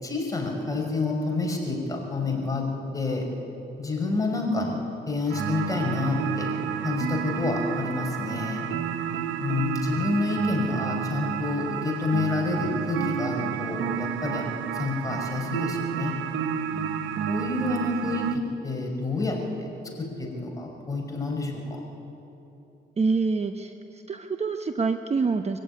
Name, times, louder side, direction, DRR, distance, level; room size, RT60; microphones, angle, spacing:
voice 1, 0.0-2.7 2.9-3.3 3.8-6.5 6.8-8.7 9.4-16.2 17.3-19.7 20.0-21.8, left 3 dB, 15° left, 0 dB, 5.8 m, -28 dB
sound 1, 5.3-18.4, right 8 dB, 75° right, 1.1 m, -31 dB
voice 2, 23.0-25.6, right 4 dB, 35° right, 7 dB, 1.0 m, -26 dB
23.5 x 15.5 x 9.8 m, 3.0 s
cardioid pair, 90°, 20 cm